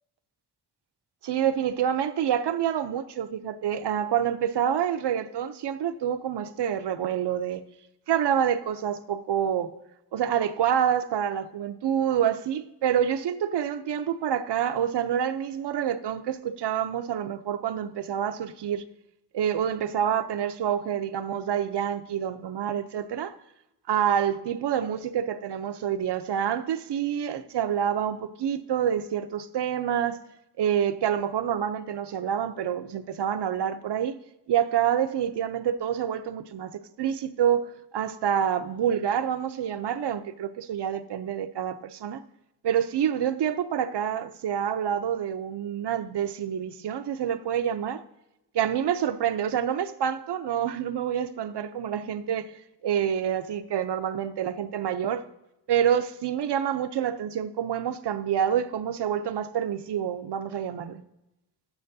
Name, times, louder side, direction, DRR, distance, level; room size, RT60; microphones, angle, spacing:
voice 1, 1.2-7.6 8.1-9.7 10.1-18.8 19.3-23.4 23.9-30.2 30.6-34.1 34.5-42.2 42.6-48.0 48.5-52.5 52.8-55.2 55.7-61.0, right 9 dB, 80° right, 0.6 m, -27 dB
13.0 x 9.2 x 2.7 m
wide cardioid pair, 180°, 40 cm